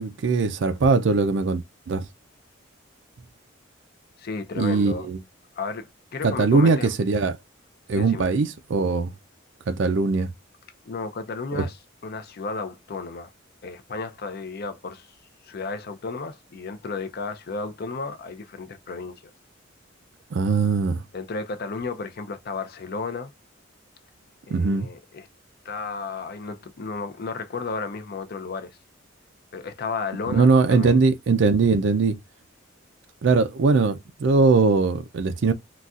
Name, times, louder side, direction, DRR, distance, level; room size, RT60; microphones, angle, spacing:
voice 1, 0.0-2.0 4.6-5.2 6.2-7.4 7.9-9.1 9.7-10.3 11.5-11.6 20.3-21.0 24.5-24.9 30.3-32.2 33.2-35.5, right 4 dB, 60° right, 0.4 m, -21 dB
voice 2, 4.2-5.1 5.6-6.9 8.0-8.3 10.9-13.3 13.6-15.2 15.4-19.3 21.1-23.3 24.5-25.3 25.6-28.8 29.5-31.0, left 4 dB, 50° left, 0.5 m, -33 dB
4.0 x 2.3 x 2.4 m
head